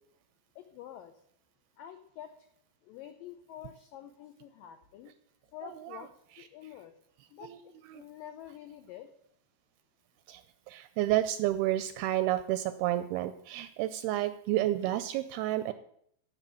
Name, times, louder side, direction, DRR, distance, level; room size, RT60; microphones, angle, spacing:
voice 1, 0.6-1.1 1.8-2.4 2.8-5.1 5.5-6.1 6.4-6.9 7.3-9.1, left 11 dB, 90° left, 7 dB, 1.9 m, -47 dB
voice 2, 10.7-15.7, right 14 dB, 85° right, 12 dB, 2.2 m, -30 dB
14.0 x 5.5 x 8.3 m, 0.69 s
omnidirectional pair, 5.0 m